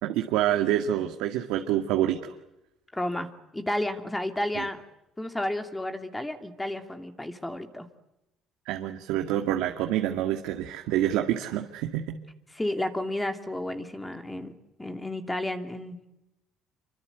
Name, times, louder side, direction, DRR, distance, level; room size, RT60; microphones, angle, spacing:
voice 1, 0.0-2.3 4.6-4.7 8.7-12.2, right 12 dB, 85° right, 4 dB, 2.1 m, -27 dB
voice 2, 2.9-4.8 5.2-7.9 12.5-16.0, left 1 dB, 10° left, 7 dB, 2.7 m, -32 dB
27.5 x 25.0 x 8.1 m, 0.89 s
cardioid pair, 115°, 0 cm